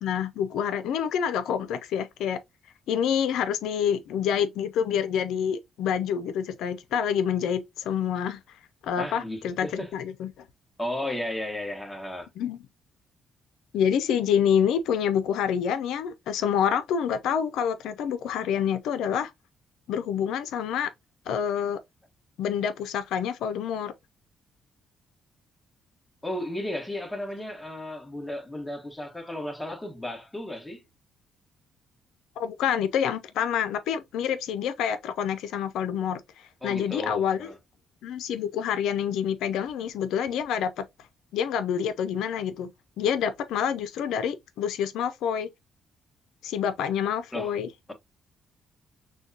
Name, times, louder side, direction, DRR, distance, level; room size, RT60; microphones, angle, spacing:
voice 1, 0.0-2.4 2.9-8.4 8.8-10.3 12.4-12.6 13.7-19.3 19.9-20.9 21.3-21.8 22.4-23.9 32.4-37.5 38.0-40.8 41.3-42.7 43.0-45.5 46.4-47.7, left 8 dB, 85° left, 0.5 m, -27 dB
voice 2, 9.0-9.9 10.8-12.3 26.2-30.8 36.6-37.6 47.3-47.5, left 1 dB, 10° left, 1.2 m, -34 dB
6.2 x 2.2 x 2.7 m
cardioid pair, 90°, 0 cm